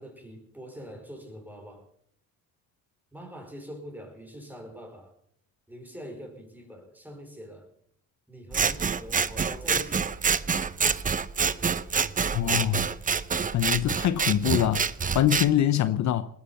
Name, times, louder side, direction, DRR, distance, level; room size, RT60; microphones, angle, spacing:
voice 1, 0.0-1.9 3.1-5.1 5.7-7.7 8.3-10.2 15.9-16.0, equal, 5° right, 5.1 m, -44 dB
Scissors, 8.5-15.5, right 6 dB, 25° right, 0.8 m, -27 dB
voice 2, 12.3-12.9 13.5-14.9 15.1-16.3, left 11 dB, 55° left, 0.9 m, -24 dB
20.0 x 9.9 x 7.1 m
cardioid pair, 110°, 33 cm